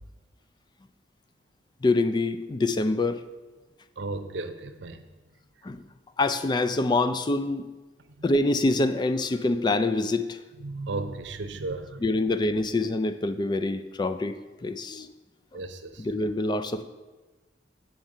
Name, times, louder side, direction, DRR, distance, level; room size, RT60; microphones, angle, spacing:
voice 1, 1.8-3.2 5.6-5.8 6.2-7.7 8.2-10.4 12.0-15.1 16.0-16.9, left 2 dB, 25° left, 11 dB, 0.3 m, -25 dB
voice 2, 4.0-5.0 8.2-8.3 10.6-12.1 15.5-16.1, right 3 dB, 90° right, 9 dB, 0.7 m, -35 dB
7.3 x 4.4 x 6.4 m, 1.2 s
head